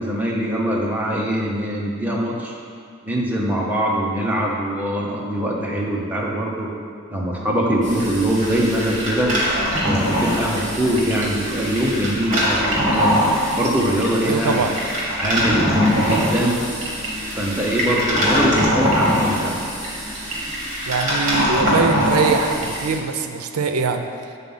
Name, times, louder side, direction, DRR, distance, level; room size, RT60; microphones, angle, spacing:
voice 1, 0.0-2.5 3.0-6.7 7.1-9.3 9.8-13.1 13.5-14.7 15.2-16.6 17.3-19.6, right 1 dB, 10° right, -4 dB, 0.8 m, -22 dB
sound 1, 7.8-23.0, equal, 35° right, 1.8 m, -22 dB
voice 2, 14.2-14.7 20.9-24.1, right 5 dB, 90° right, 6 dB, 0.5 m, -22 dB
7.4 x 4.1 x 5.5 m, 2.3 s
head